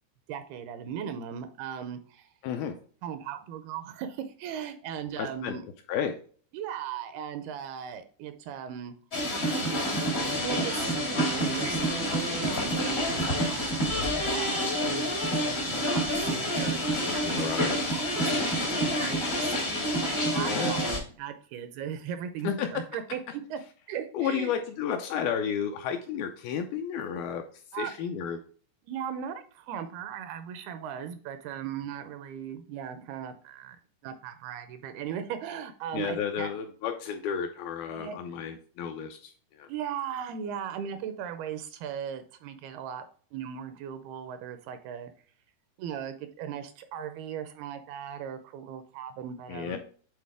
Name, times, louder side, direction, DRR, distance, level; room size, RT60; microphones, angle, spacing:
voice 1, 0.3-2.3 3.0-5.6 6.5-8.9 10.4-15.1 15.4-17.8 18.1-23.6 23.9-24.5 27.7-27.9 28.9-33.8 34.0-36.5 37.9-38.2 39.7-43.1 43.3-45.1 45.8-49.8, right 8 dB, 80° right, 9 dB, 2.4 m, -38 dB
voice 2, 2.4-2.7 5.2-5.5 5.9-6.1 14.0-14.2 17.2-17.8 20.5-20.8 22.4-22.7 24.1-27.4 27.7-28.4 35.9-39.3 39.6-39.7 49.5-49.8, left 8 dB, 80° left, 5 dB, 2.2 m, -32 dB
sound 1, 9.1-21.0, equal, 60° left, 0.6 m, -28 dB
8.5 x 4.0 x 3.4 m, 0.43 s
omnidirectional pair, 4.8 m